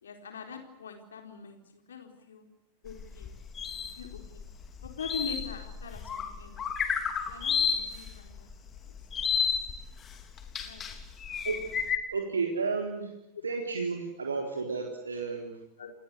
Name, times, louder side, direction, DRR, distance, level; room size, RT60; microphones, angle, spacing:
voice 1, 0.0-1.6 1.9-2.5 2.8-3.3 4.0-4.4 4.8-6.6 7.3-8.5 8.8-8.9 10.6-10.8 15.8-15.9, left 5 dB, 65° left, 5 dB, 4.3 m, -42 dB
sound 1, 2.9-12.0, left 7 dB, 25° left, 3.5 m, -32 dB
voice 2, 12.1-13.1 13.4-15.6, right 4 dB, 75° right, 1 dB, 3.9 m, -32 dB
29.5 x 21.0 x 8.3 m, 0.86 s
figure-of-eight pair, 90°, 0 cm